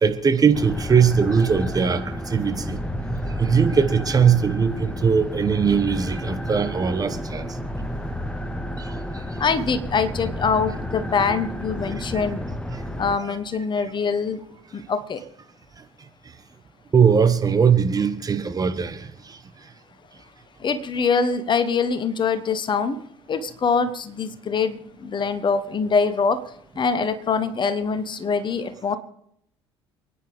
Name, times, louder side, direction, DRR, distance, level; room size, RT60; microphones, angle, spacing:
voice 1, 0.0-2.8 3.4-7.4 12.1-12.2 13.2-13.4 16.9-19.1, right 6 dB, 25° right, 1.4 m, -20 dB
sound 1, 0.5-13.2, equal, 10° left, 1.3 m, -31 dB
voice 2, 9.4-12.4 13.0-14.4 14.7-15.2 20.6-23.0 23.3-26.4 26.8-29.0, left 5 dB, 35° left, 1.3 m, -24 dB
28.5 x 10.0 x 3.6 m
figure-of-eight pair, 60°, 14 cm